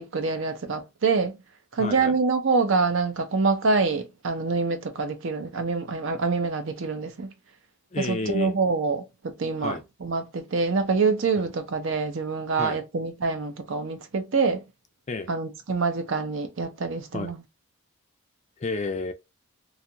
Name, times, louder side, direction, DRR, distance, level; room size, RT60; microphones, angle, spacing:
voice 1, 0.0-1.3 1.7-7.3 8.0-9.0 9.4-9.7 10.0-14.6 15.3-17.4, right 4 dB, 60° right, 0.5 m, -25 dB
voice 2, 1.8-2.2 7.9-8.6 9.6-9.8 11.4-11.5 12.6-12.8 15.1-15.3 17.1-17.3 18.6-19.1, left 3 dB, 30° left, 0.4 m, -30 dB
2.6 x 2.4 x 2.7 m
head